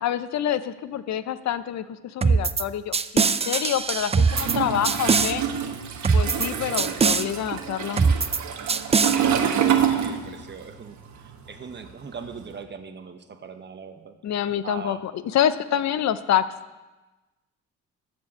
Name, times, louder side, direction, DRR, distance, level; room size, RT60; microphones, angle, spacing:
voice 1, 0.0-5.4 6.1-8.0 14.2-15.0 15.3-16.4, left 10 dB, 65° left, 13 dB, 0.7 m, -26 dB
sound 1, 2.2-2.6 2.9-4.6 4.8-5.3 6.0-6.5 6.8-7.2 8.0-8.4 8.7-9.2, right 5 dB, 20° right, 0.4 m, -21 dB
Toilet flush, 4.2-10.7 10.9-12.5, right 8 dB, 70° right, 1.2 m, -27 dB
voice 2, 4.6-5.0 6.9-7.0 9.1-14.2 14.6-15.0, right 5 dB, 35° right, 7 dB, 1.1 m, -40 dB
14.0 x 4.7 x 7.3 m, 1.1 s
cardioid pair, 90°, 30 cm